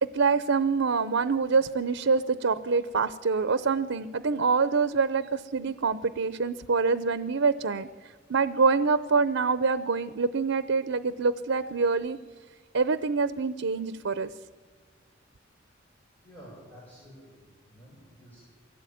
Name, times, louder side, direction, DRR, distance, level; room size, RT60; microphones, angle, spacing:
voice 1, 0.0-12.2 12.7-14.3, right 4 dB, 85° right, 14 dB, 0.7 m, -26 dB
voice 2, 16.2-18.4, equal, 10° left, -6 dB, 7.4 m, -50 dB
23.0 x 16.5 x 9.3 m, 1.5 s
head